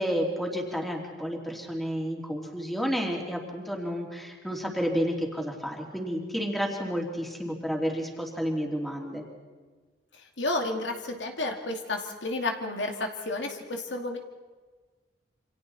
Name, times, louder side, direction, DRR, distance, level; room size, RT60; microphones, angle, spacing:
voice 1, 0.0-9.2, equal, ahead, 0 dB, 3.0 m, -31 dB
voice 2, 10.2-14.2, left 2 dB, 85° left, 3 dB, 2.5 m, -31 dB
28.0 x 26.0 x 4.3 m, 1.4 s
head